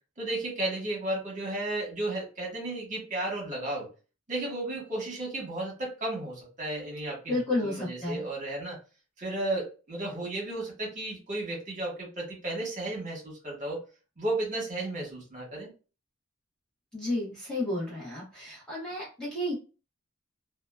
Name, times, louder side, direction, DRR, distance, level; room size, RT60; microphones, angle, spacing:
voice 1, 0.2-3.9 4.3-8.8 9.2-13.8 14.2-15.7, right 2 dB, 40° right, -2 dB, 1.2 m, -33 dB
voice 2, 7.3-8.2 16.9-19.5, left 1 dB, 5° left, -6 dB, 0.9 m, -32 dB
2.7 x 2.1 x 2.2 m, 0.33 s
head